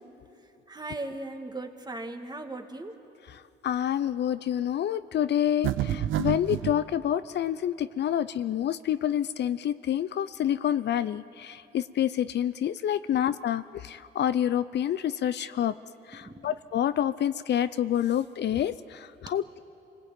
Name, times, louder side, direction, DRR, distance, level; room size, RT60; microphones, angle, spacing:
voice 1, 0.3-3.0 16.1-16.6, right 2 dB, 20° right, 5 dB, 1.9 m, -39 dB
voice 2, 3.6-15.7 16.4-19.6, left 10 dB, 60° left, 14 dB, 0.6 m, -28 dB
sound 1, 5.6-6.8, right 12 dB, 85° right, 0.9 m, -28 dB
27.0 x 20.0 x 9.0 m, 2.8 s
cardioid pair, 90°, 20 cm